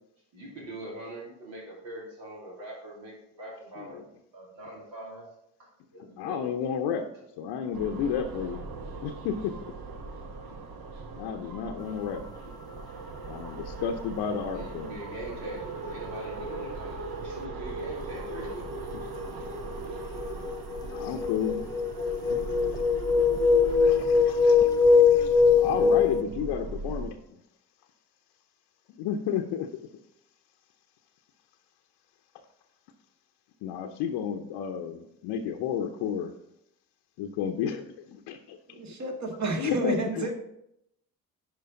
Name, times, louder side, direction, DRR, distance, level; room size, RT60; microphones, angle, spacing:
voice 1, 0.3-4.0 4.3-5.3 5.6-6.5 14.5-18.7 24.1-24.2, right 1 dB, 75° right, 3.0 m, -42 dB
voice 2, 6.2-7.1 7.4-8.6 9.0-9.5 11.2-12.3 13.3-15.0 18.9-19.5 20.8-21.7 22.2-22.8 23.6-27.2 28.9-29.9 33.6-36.3 37.2-38.8 39.6-40.3, left 8 dB, 65° left, 0.8 m, -32 dB
sound 1, 7.7-27.1, right 3 dB, 55° right, 1.3 m, -39 dB
sound 2, 19.2-19.5 19.9-26.2, left 5 dB, 10° left, 0.4 m, -22 dB
voice 3, 38.7-40.3, right 3 dB, 40° right, 1.7 m, -31 dB
10.5 x 5.1 x 3.8 m
hypercardioid pair, 50°, 44 cm